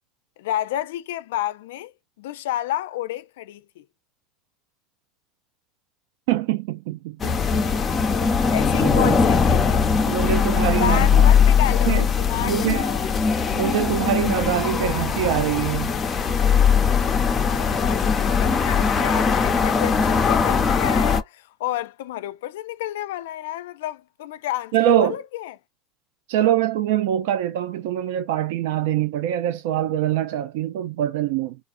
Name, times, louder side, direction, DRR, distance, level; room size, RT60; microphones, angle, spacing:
voice 1, 0.4-1.9 2.2-3.8 8.5-9.8 10.7-13.1 17.4-24.7 25.0-25.6, left 13 dB, 90° left, 0.3 m, -30 dB
voice 2, 6.3-7.3 8.8-9.2 10.1-11.2 11.9-12.1 12.4-12.8 13.5-15.9 24.7-25.2 26.3-31.6, right 11 dB, 75° right, 0.4 m, -23 dB
sound 1, 7.2-21.2, left 6 dB, 20° left, 0.6 m, -20 dB
3.6 x 2.4 x 2.5 m
supercardioid pair, 130°, 0 cm